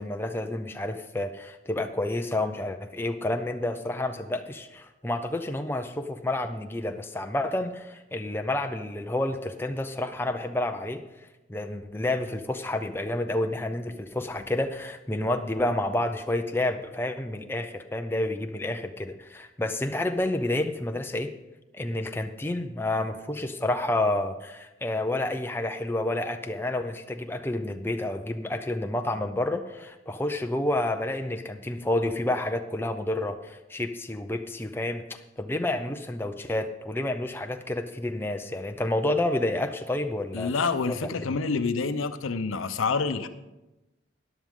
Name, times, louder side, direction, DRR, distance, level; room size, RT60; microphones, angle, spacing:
voice 1, 0.0-11.0 11.5-21.3 21.7-35.0 35.4-40.5 40.9-41.0, left 1 dB, 10° left, 6 dB, 0.5 m, -29 dB
voice 2, 40.3-43.3, left 4 dB, 90° left, 11 dB, 0.7 m, -27 dB
13.5 x 10.5 x 3.7 m, 1.0 s
head